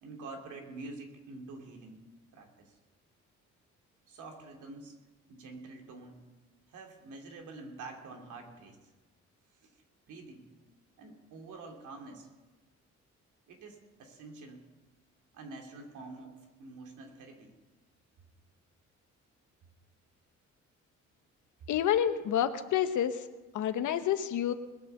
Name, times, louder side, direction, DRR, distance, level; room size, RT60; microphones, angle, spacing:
voice 1, 0.0-2.0 2.3-2.7 4.1-5.0 5.3-6.3 6.7-8.8 9.6-9.7 10.1-10.5 11.0-12.3 13.5-14.6 15.3-17.5, right 3 dB, 80° right, 3 dB, 3.0 m, -47 dB
voice 2, 21.7-23.2 23.5-24.5, left 10 dB, 80° left, 9 dB, 1.2 m, -28 dB
20.5 x 7.9 x 6.7 m, 1.1 s
cardioid pair, 90°, 30 cm